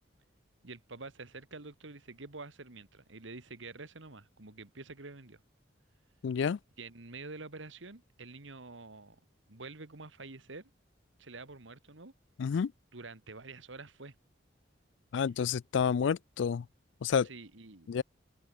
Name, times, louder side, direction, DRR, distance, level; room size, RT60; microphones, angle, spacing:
voice 1, 0.6-5.4 6.8-9.2 9.5-10.7 11.2-12.1 12.9-14.2 17.2-18.0, right 3 dB, 85° right, 1.9 m, -47 dB
voice 2, 6.2-6.6 12.4-12.7 15.1-16.7 17.0-17.3 17.9-18.0, left 6 dB, 75° left, 0.4 m, -29 dB
head